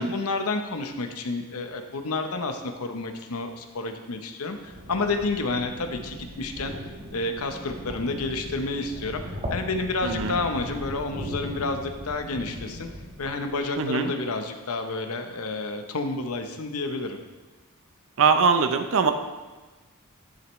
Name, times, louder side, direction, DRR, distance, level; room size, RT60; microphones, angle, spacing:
voice 1, 0.0-9.2 9.5-12.9 13.2-17.2, left 3 dB, 70° left, 6 dB, 0.8 m, -30 dB
sound 1, 4.5-13.8, equal, 35° right, 1.3 m, -38 dB
voice 2, 10.0-10.3 13.8-14.1 18.2-19.1, right 5 dB, 60° right, 8 dB, 0.6 m, -21 dB
10.5 x 7.7 x 3.1 m, 1.2 s
head